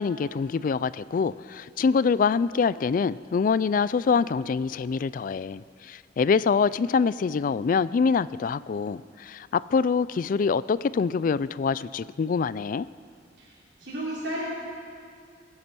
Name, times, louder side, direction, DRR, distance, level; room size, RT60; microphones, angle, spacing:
voice 1, 0.0-12.9, left 5 dB, 45° left, 18 dB, 0.3 m, -25 dB
voice 2, 13.4-14.5, right 1 dB, 70° right, -9 dB, 4.3 m, -33 dB
21.5 x 9.7 x 6.0 m, 2.3 s
head